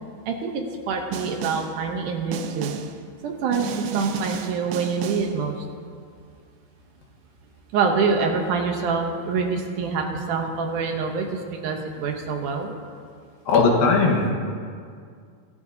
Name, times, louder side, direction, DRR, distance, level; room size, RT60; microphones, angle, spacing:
voice 1, 0.3-2.7 3.2-5.6 7.7-12.7, right 5 dB, 70° right, 3 dB, 2.2 m, -26 dB
Snare drum, 1.1-1.8 2.3-3.0 3.5-5.4, right 6 dB, 90° right, 2.5 m, -32 dB
voice 2, 13.5-14.3, left 4 dB, 70° left, 0 dB, 3.2 m, -18 dB
23.5 x 12.0 x 2.8 m, 2.2 s
omnidirectional pair, 4.3 m